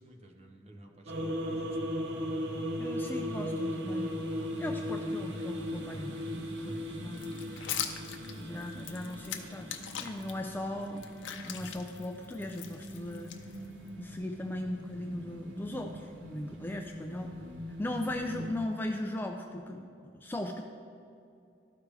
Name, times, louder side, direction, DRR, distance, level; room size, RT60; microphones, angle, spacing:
voice 1, 0.0-2.2 6.7-6.9 16.5-16.6, right 1 dB, 35° right, 3 dB, 0.7 m, -53 dB
sound 1, 1.1-18.6, equal, 75° right, 0.7 m, -38 dB
voice 2, 2.8-4.1 4.6-7.4 8.4-11.1 11.4-13.4 14.0-17.3 17.8-20.6, left 1 dB, 10° left, 3 dB, 0.3 m, -38 dB
sound 2, 7.1-10.3 10.8-13.9, left 9 dB, 85° left, 0.6 m, -41 dB
12.5 x 4.7 x 3.3 m, 2.5 s
head